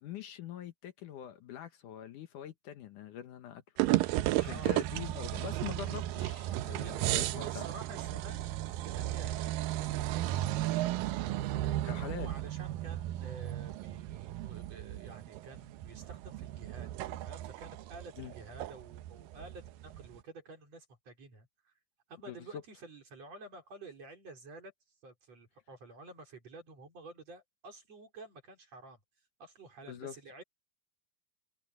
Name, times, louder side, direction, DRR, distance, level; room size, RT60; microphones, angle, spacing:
voice 1, 0.0-3.6 4.1-7.7 11.9-12.3 18.2-18.3 22.3-22.4 29.9-30.2, left 10 dB, 70° left, 2.5 m, -44 dB
sound 1, 3.8-20.2, right 15 dB, 80° right, 2.4 m, -34 dB
voice 2, 4.4-4.7 6.7-8.5 8.8-11.1 11.4-21.7 22.1-24.7 25.0-29.0 29.4-30.4, right 3 dB, 45° right, 5.6 m, -51 dB
omnidirectional pair, 4.0 m